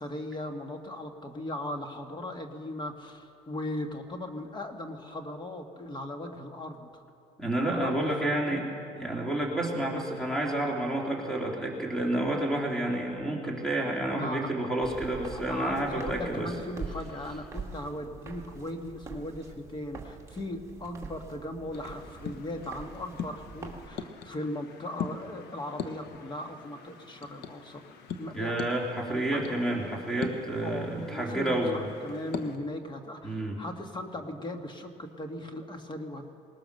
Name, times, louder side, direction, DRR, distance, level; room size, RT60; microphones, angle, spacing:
voice 1, 0.0-7.0 7.7-8.6 14.1-14.5 15.3-28.8 29.3-29.6 30.6-36.3, left 1 dB, 25° left, 5 dB, 1.8 m, -38 dB
voice 2, 7.4-8.6 8.9-16.5 28.3-31.9 33.2-33.6, right 1 dB, 5° left, -1 dB, 3.0 m, -30 dB
Walk footsteps, 14.8-23.9, right 4 dB, 15° right, 2.2 m, -44 dB
sound 1, 21.7-32.6, left 6 dB, 75° left, 1.2 m, -42 dB
20.0 x 19.5 x 6.7 m, 2.5 s
cardioid pair, 110°, 17 cm